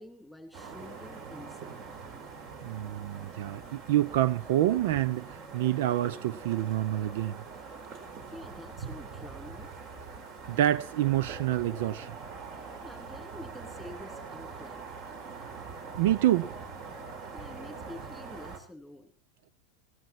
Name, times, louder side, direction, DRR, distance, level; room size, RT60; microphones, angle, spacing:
voice 1, 0.0-1.9 8.3-9.7 12.8-14.9 17.3-19.1, left 1 dB, ahead, 3.1 m, -48 dB
sound 1, 0.5-18.6, right 4 dB, 40° right, 4.2 m, -43 dB
voice 2, 2.6-7.4 10.5-12.1 16.0-16.5, right 13 dB, 70° right, 0.8 m, -27 dB
17.5 x 16.0 x 4.4 m
supercardioid pair, 155°, 0 cm